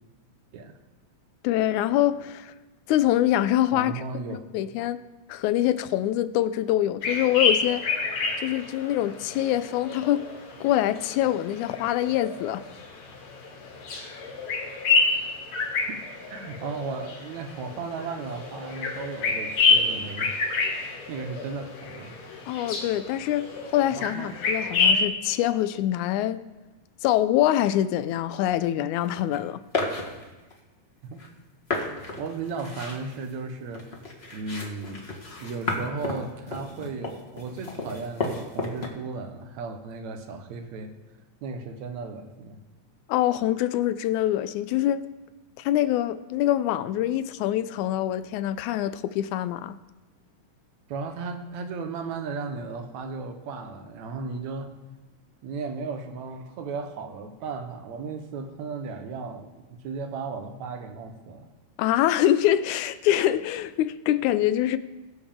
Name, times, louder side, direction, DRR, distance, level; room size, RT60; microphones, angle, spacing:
voice 1, 1.4-2.5 2.9-4.0 4.5-5.0 5.3-7.8 8.4-10.3 10.6-12.7 22.5-26.4 27.0-29.6 43.1-45.0 45.6-49.8 61.8-64.8, left 13 dB, 85° left, 2.0 m, -24 dB
voice 2, 3.7-4.4 16.3-20.4 21.1-22.2 23.9-24.4 31.1-31.2 32.2-33.9 34.3-35.1 35.4-40.9 41.4-42.6 50.9-54.7 55.4-61.5, right 4 dB, 75° right, 2.3 m, -35 dB
sound 1, 7.0-25.0, left 4 dB, 65° left, 3.0 m, -28 dB
sound 2, 29.0-29.4 29.7-30.6 31.2-31.3 31.7-38.9, left 3 dB, 35° left, 1.0 m, -33 dB
21.0 x 7.1 x 3.6 m
omnidirectional pair, 3.4 m